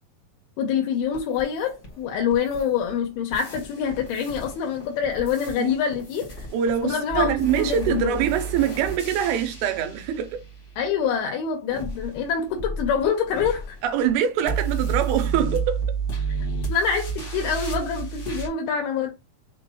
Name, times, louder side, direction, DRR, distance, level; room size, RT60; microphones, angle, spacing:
voice 1, 0.6-6.3 6.8-8.2 10.8-13.8 16.7-19.1, left 7 dB, 85° left, 2.8 m, -25 dB
sound 1, 1.1-3.0 3.3-11.0 11.7-18.5, right 5 dB, 45° left, 0.9 m, -32 dB
voice 2, 6.5-10.4 13.8-15.8, right 9 dB, 90° right, 2.6 m, -24 dB
6.5 x 2.2 x 3.1 m
omnidirectional pair, 4.3 m